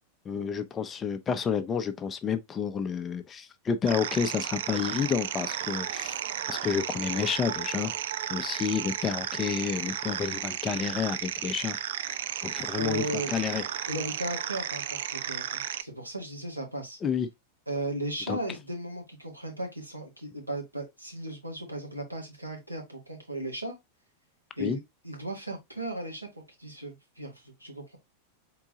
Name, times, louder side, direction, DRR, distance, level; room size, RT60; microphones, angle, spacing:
voice 1, 0.3-6.2 6.5-7.9 8.3-11.8 12.4-13.6 17.0-17.3 18.3-18.4 24.6-24.8, left 7 dB, 25° left, 0.6 m, -30 dB
sound 1, 3.9-15.8, right 10 dB, 60° right, 0.3 m, -34 dB
voice 2, 12.7-13.3 13.9-17.0 17.7-23.8 24.6-24.8 25.0-28.0, right 1 dB, 90° right, 1.5 m, -36 dB
4.5 x 3.8 x 2.8 m
figure-of-eight pair, 90°, 0 cm